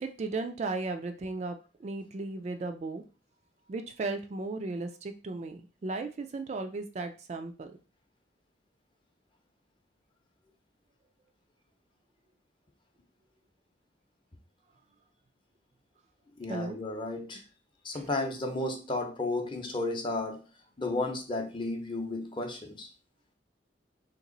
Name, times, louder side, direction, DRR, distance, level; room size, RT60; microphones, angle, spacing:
voice 1, 0.0-3.0 3.7-7.7 16.5-16.8, right 3 dB, 40° right, 6 dB, 0.3 m, -35 dB
voice 2, 16.4-17.4 17.8-20.4 20.8-22.9, left 2 dB, 25° left, 4 dB, 0.7 m, -33 dB
2.9 x 2.9 x 3.8 m, 0.34 s
head